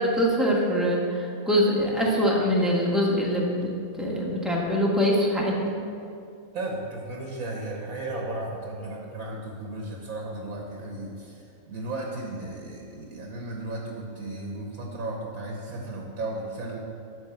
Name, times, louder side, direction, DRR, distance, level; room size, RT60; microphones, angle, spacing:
voice 1, 0.0-3.7 4.0-5.8, equal, ahead, -4 dB, 1.4 m, -23 dB
voice 2, 6.5-16.8, right 2 dB, 75° right, -1 dB, 1.6 m, -35 dB
11.0 x 4.3 x 7.1 m, 2.5 s
omnidirectional pair, 1.5 m